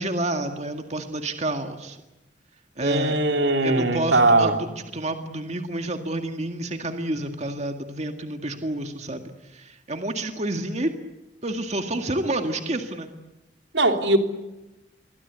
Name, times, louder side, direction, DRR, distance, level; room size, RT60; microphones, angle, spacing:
voice 1, 0.0-2.0 2.8-3.2 3.6-4.7 4.9-10.9 11.4-13.1, right 1 dB, 40° right, 5 dB, 2.0 m, -29 dB
voice 2, 2.8-4.6 13.7-14.2, right 2 dB, 80° right, 5 dB, 3.4 m, -20 dB
27.5 x 23.0 x 8.3 m, 1.0 s
head